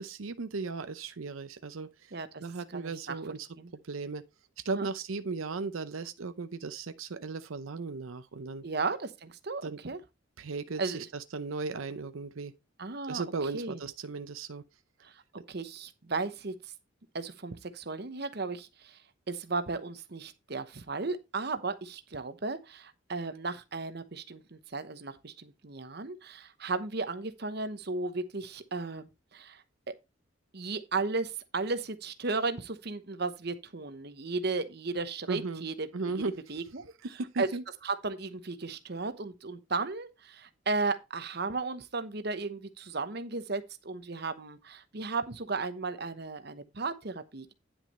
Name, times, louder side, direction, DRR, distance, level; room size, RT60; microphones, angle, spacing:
voice 1, 0.0-2.1 2.4-3.5 3.8-4.2 4.6-8.6 9.6-9.8 10.4-12.5 13.1-14.6 35.3-35.7 35.9-36.3 37.2-37.6, right 4 dB, 85° right, 0.7 m, -36 dB
voice 2, 2.1-2.4 2.7-3.1 3.6-3.7 4.7-4.9 8.6-10.0 10.8-11.1 12.8-13.2 13.5-13.8 15.0-15.1 15.5-16.5 17.1-19.0 19.3-29.9 30.5-36.2 36.5-36.8 37.4-37.5 37.8-47.5, right 3 dB, 50° right, 1.0 m, -35 dB
10.0 x 6.1 x 4.2 m
head